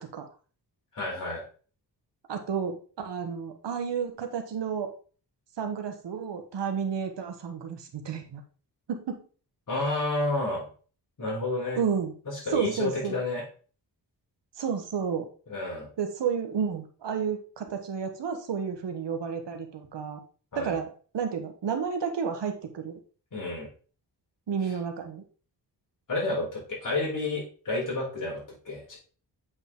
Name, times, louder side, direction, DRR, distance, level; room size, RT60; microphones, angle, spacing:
voice 1, 0.9-1.4 9.7-10.7 11.2-11.8 12.3-13.4 15.5-15.9 20.5-20.7 23.3-23.7 26.1-29.0, left 2 dB, 45° left, -5 dB, 4.4 m, -30 dB
voice 2, 2.3-4.9 5.6-8.4 8.9-9.2 11.7-12.2 12.5-13.2 14.6-15.3 16.0-20.2 20.5-23.0 24.5-25.2, right 6 dB, 80° right, 6 dB, 1.3 m, -31 dB
8.1 x 5.0 x 3.8 m, 0.39 s
wide cardioid pair, 150°, 42 cm